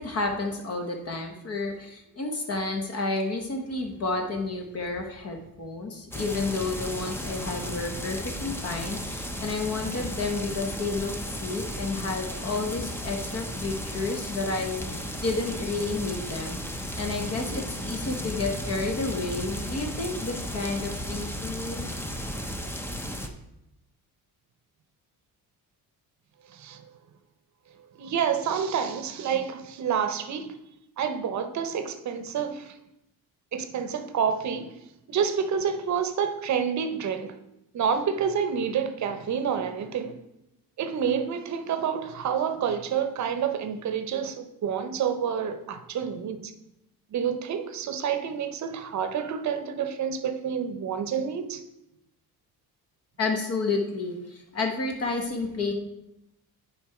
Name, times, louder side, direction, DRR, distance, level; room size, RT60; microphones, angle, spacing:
voice 1, 0.0-16.6 17.0-21.9 53.2-55.7, left 3 dB, 40° left, 1.0 m, -31 dB
sound 1, 6.1-23.3, equal, 5° left, 0.6 m, -34 dB
voice 2, 28.0-30.5 31.0-32.7 33.5-34.7 35.1-37.3 37.7-40.2 40.8-46.5 47.1-51.6, right 7 dB, 50° right, 0.8 m, -28 dB
10.5 x 4.6 x 4.8 m
cardioid pair, 170°, 38 cm